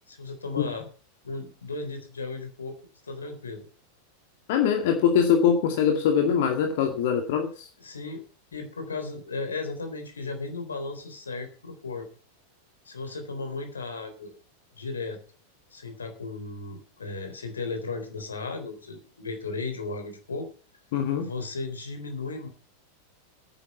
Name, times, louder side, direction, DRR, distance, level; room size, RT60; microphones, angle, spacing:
voice 1, 0.1-0.8 1.2-2.8 3.0-3.7 7.8-8.2 8.5-12.1 12.9-14.3 14.8-15.2 15.7-20.5 21.2-22.5, left 3 dB, 75° left, 6 dB, 3.9 m, -35 dB
voice 2, 4.5-7.7 20.9-21.3, left 7 dB, 50° left, 4 dB, 2.1 m, -23 dB
10.5 x 8.9 x 8.3 m, 0.39 s
figure-of-eight pair, 90°, 0 cm